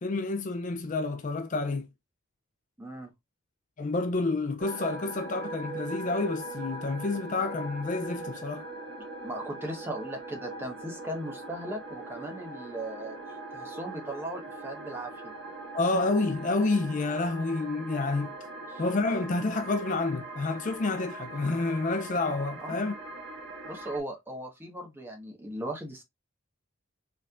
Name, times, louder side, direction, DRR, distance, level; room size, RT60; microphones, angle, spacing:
voice 1, 0.0-1.9 3.8-8.7 15.7-18.3 18.8-22.9, left 3 dB, 35° left, 0.4 m, -29 dB
voice 2, 2.8-3.1 9.2-13.2 13.5-15.1 18.7-18.8 22.6-22.8 23.6-26.0, right 1 dB, 10° right, 1.2 m, -38 dB
sound 1, 4.6-24.0, right 2 dB, 55° right, 1.9 m, -41 dB
4.6 x 3.5 x 2.4 m
head